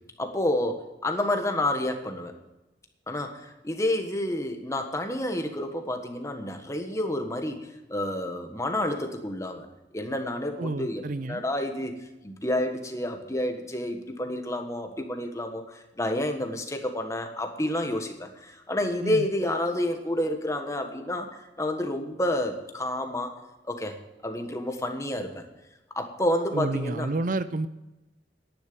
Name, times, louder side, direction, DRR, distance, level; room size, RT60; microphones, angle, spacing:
voice 1, 0.2-2.3 3.1-9.7 9.9-11.9 12.2-23.3 23.7-24.0 24.2-25.4 25.9-27.1, left 1 dB, 15° left, 5 dB, 1.5 m, -29 dB
voice 2, 10.6-11.4 19.0-19.3 26.5-27.7, right 2 dB, 50° right, 13 dB, 0.5 m, -30 dB
11.0 x 10.5 x 7.0 m, 1.0 s
head